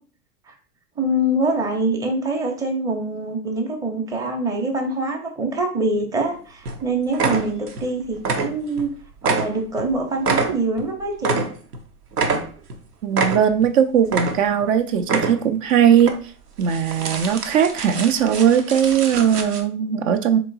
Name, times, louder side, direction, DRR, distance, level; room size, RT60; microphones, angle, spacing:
voice 1, 1.0-8.9 9.2-11.4, right 2 dB, 10° right, 0.6 m, -24 dB
sound 1, 6.2-6.4 6.7-6.8 7.1-7.9 8.2-8.9 9.2-11.8 12.1-12.8 13.1-13.7 14.0-14.7 15.0-15.6 16.0-16.1 16.6-19.6, right 4 dB, 90° right, 0.8 m, -26 dB
voice 2, 13.0-16.2 16.6-20.4, right 8 dB, 60° right, 0.6 m, -19 dB
3.7 x 2.9 x 3.8 m
hypercardioid pair, 105°, 45 cm